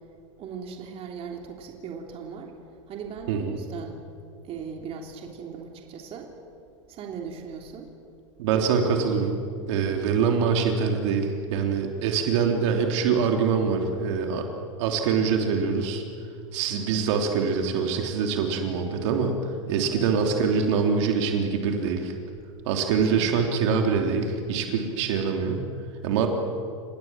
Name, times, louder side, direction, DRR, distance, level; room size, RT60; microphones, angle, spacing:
voice 1, 0.4-2.5 2.9-4.0 4.4-6.3 6.6-7.9 19.8-20.1 22.9-23.5, right 6 dB, 35° right, 2 dB, 3.0 m, -38 dB
voice 2, 8.4-9.3 9.7-14.4 14.8-16.0 16.5-19.3 19.7-22.1 22.6-25.7 26.0-26.3, right 6 dB, 65° right, 3 dB, 3.3 m, -24 dB
29.0 x 17.0 x 7.5 m, 2.4 s
hypercardioid pair, 120°, 17 cm